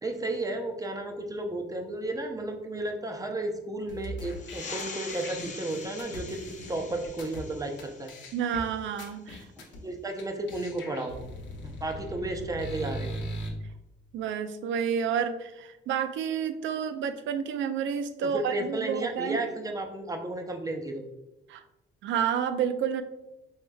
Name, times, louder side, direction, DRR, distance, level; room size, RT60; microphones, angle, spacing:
voice 1, 0.0-6.4 6.7-8.1 9.8-11.1 11.6-13.1 18.2-21.0, right 2 dB, 15° right, 4 dB, 0.6 m, -33 dB
sound 1, 3.9-7.4 7.8-7.9 8.1-8.6 9.0-9.8 10.2-10.3 10.5-13.5, equal, 70° left, 0.8 m, -39 dB
sound 2, 4.3-9.4, left 4 dB, 40° left, 0.5 m, -44 dB
voice 2, 8.3-9.5 14.1-19.4 21.5-21.6 22.0-23.0, right 8 dB, 70° right, 10 dB, 0.4 m, -30 dB
4.7 x 3.1 x 2.2 m, 0.95 s
cardioid pair, 90°, 20 cm